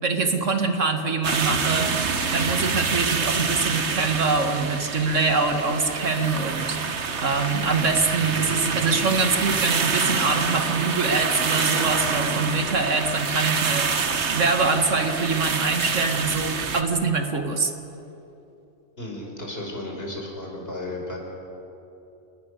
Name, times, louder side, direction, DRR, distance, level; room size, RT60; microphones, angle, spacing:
voice 1, 0.0-1.9 2.3-6.8 7.2-17.7, right 4 dB, 85° right, 5 dB, 2.3 m, -24 dB
sound 1, 1.2-16.8, right 5 dB, 65° right, 1.5 m, -26 dB
voice 2, 19.0-21.2, left 1 dB, 50° left, -1 dB, 5.4 m, -34 dB
29.5 x 20.0 x 6.8 m, 2.9 s
omnidirectional pair, 1.3 m